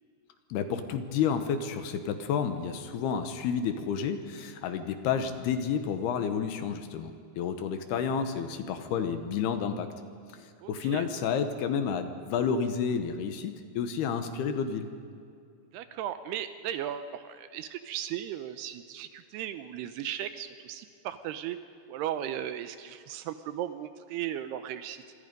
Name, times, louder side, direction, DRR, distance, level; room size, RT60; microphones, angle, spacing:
voice 1, 0.5-9.9 10.7-14.9, left 7 dB, 70° left, 8 dB, 2.9 m, -30 dB
voice 2, 10.6-11.1 15.7-21.6 21.9-25.0, right 11 dB, 80° right, 11 dB, 2.6 m, -36 dB
25.5 x 25.5 x 5.3 m, 2.4 s
omnidirectional pair, 5.1 m